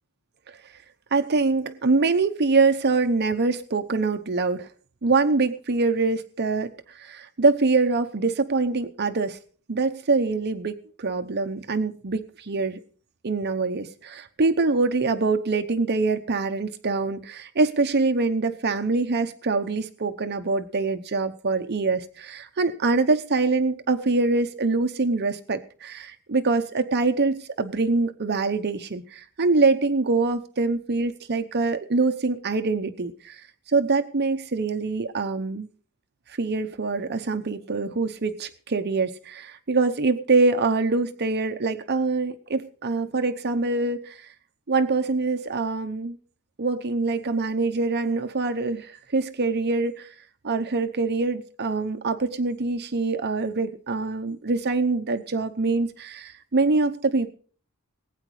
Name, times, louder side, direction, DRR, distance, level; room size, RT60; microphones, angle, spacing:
voice 1, 1.1-4.7 5.0-9.4 9.7-12.8 13.2-35.7 36.4-44.3 44.7-46.2 46.6-50.1 50.4-57.3, right 3 dB, 50° right, 7 dB, 0.8 m, -24 dB
19.5 x 9.2 x 4.8 m, 0.43 s
head